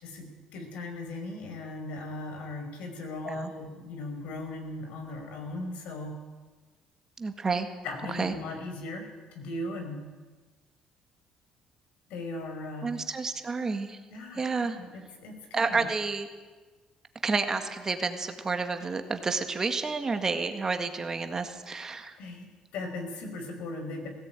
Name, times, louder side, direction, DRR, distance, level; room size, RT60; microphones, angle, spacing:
voice 1, 0.0-6.2 7.8-9.1 9.3-10.0 12.1-12.9 14.1-15.9 22.2-22.5 22.7-24.1, left 2 dB, 80° left, 4 dB, 5.3 m, -38 dB
voice 2, 7.2-7.7 8.1-8.3 12.8-14.0 14.3-14.8 15.5-16.3 17.2-22.2, right 4 dB, 25° right, 7 dB, 1.9 m, -30 dB
17.5 x 16.5 x 9.1 m, 1.3 s
cardioid pair, 110°, 2 cm